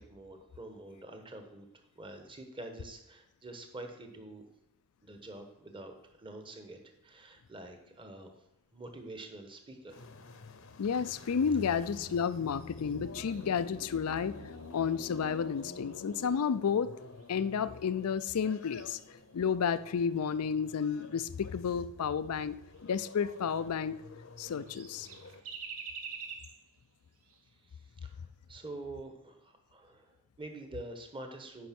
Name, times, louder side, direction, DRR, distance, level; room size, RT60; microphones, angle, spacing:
voice 1, 0.0-1.7 2.0-4.4 5.0-8.3 8.7-10.1 27.6-31.7, right 2 dB, 20° right, 5 dB, 1.1 m, -47 dB
sound 1, 9.9-25.4, left 3 dB, 65° left, 0.8 m, -49 dB
voice 2, 10.8-14.3 14.7-16.9 17.3-19.0 19.3-24.0 24.4-25.1, left 6 dB, 85° left, 15 dB, 0.4 m, -31 dB
sound 2, 13.3-17.9 18.1-21.5 22.0-22.1 22.3-22.4 22.7-24.1 24.4-27.9 28.2-28.3 28.7-28.9, right 5 dB, 75° right, 1.2 m, -50 dB
9.6 x 5.5 x 5.9 m, 0.91 s
head